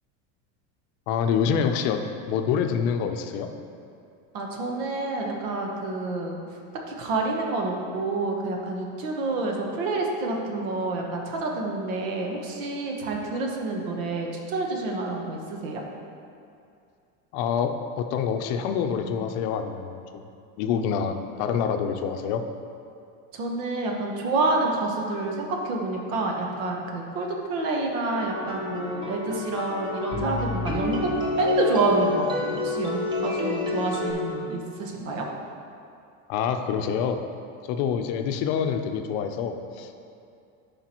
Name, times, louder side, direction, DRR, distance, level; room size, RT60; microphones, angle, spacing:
voice 1, 1.1-2.0 2.3-3.5 17.3-19.9 20.6-22.4 36.3-37.2 37.7-40.1, left 7 dB, 55° left, 6 dB, 0.6 m, -26 dB
voice 2, 4.3-6.4 6.9-15.8 23.3-31.1 31.4-35.3, right 3 dB, 85° right, 0 dB, 1.2 m, -28 dB
sound 1, 28.1-34.1, left 2 dB, 15° right, 0.7 m, -28 dB
11.5 x 5.0 x 3.0 m, 2.5 s
cardioid pair, 165°, 38 cm